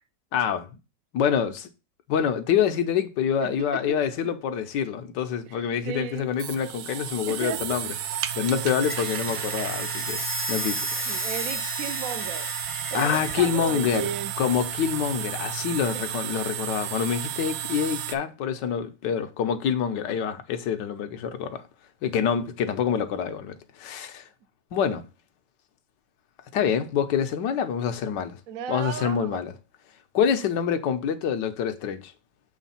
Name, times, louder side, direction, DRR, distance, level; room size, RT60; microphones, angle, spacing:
voice 1, 0.3-0.7 1.1-1.7 2.1-7.9 8.3-10.2 10.5-11.2 12.9-14.1 14.4-21.6 22.0-24.3 24.7-25.0 26.5-28.4 28.7-29.5 30.1-32.1, left 8 dB, 70° left, 1.4 m, -26 dB
voice 2, 3.4-4.0 5.5-6.3 7.3-7.8 11.1-12.5 12.9-14.3 15.9-16.0 28.5-29.4, right 7 dB, 60° right, 0.9 m, -34 dB
sound 1, 5.8-18.2, right 10 dB, 75° right, 1.2 m, -33 dB
sound 2, 8.8-13.4, left 1 dB, 20° left, 0.3 m, -33 dB
7.3 x 3.3 x 5.6 m
omnidirectional pair, 2.0 m